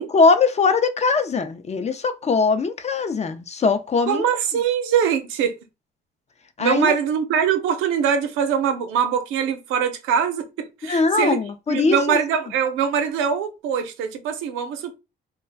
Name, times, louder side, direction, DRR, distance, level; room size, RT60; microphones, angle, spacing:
voice 1, 0.0-4.2 6.6-6.9 10.9-12.2, left 4 dB, 35° left, 0.5 m, -21 dB
voice 2, 4.1-5.5 6.6-11.4 11.7-14.9, right 7 dB, 90° right, 0.6 m, -23 dB
2.4 x 2.1 x 3.3 m
cardioid pair, 75°, 20 cm